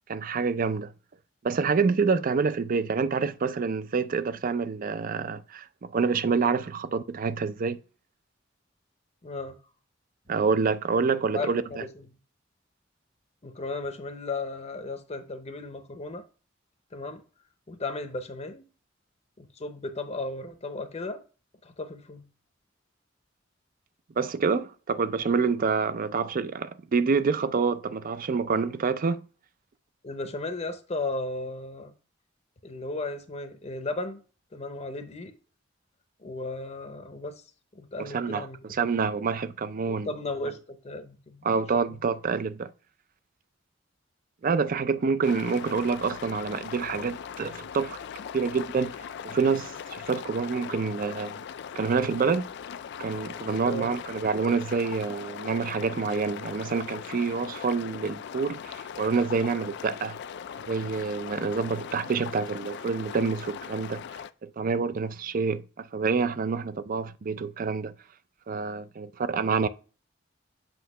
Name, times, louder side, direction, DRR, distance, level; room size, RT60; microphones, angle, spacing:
voice 1, 0.1-0.9 1.4-7.8 10.3-11.6 24.2-29.2 38.1-40.1 41.4-42.7 44.4-48.0 48.3-49.0 49.2-51.4 51.8-52.5 53.0-60.2 60.5-64.0 64.4-67.9 68.5-69.7, right 5 dB, 45° right, 0.4 m, -27 dB
voice 2, 9.2-9.6 11.3-12.2 13.4-16.2 16.9-17.2 17.7-18.6 19.4-21.2 21.6-22.3 30.0-31.9 32.6-34.2 34.5-35.3 36.2-37.4 37.7-38.6 39.9-41.5 41.8-42.0 53.6-53.9, left 2 dB, 35° left, 0.7 m, -35 dB
sound 1, 45.2-64.3, left 7 dB, 60° left, 0.3 m, -40 dB
7.9 x 2.8 x 5.4 m
head